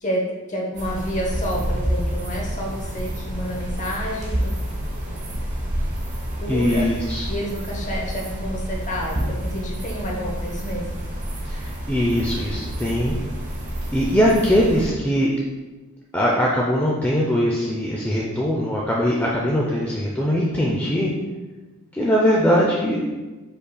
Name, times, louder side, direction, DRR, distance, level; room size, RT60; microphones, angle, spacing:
voice 1, 0.0-4.5 6.4-6.9 7.3-11.0, equal, 35° left, -1 dB, 0.9 m, -29 dB
sound 1, 0.7-14.9, equal, 35° right, 0.8 m, -29 dB
voice 2, 6.5-7.3 11.4-13.2 13.9-15.3 16.1-21.1 21.9-23.1, equal, 10° left, -4 dB, 0.3 m, -21 dB
5.4 x 4.0 x 2.2 m, 1.2 s
head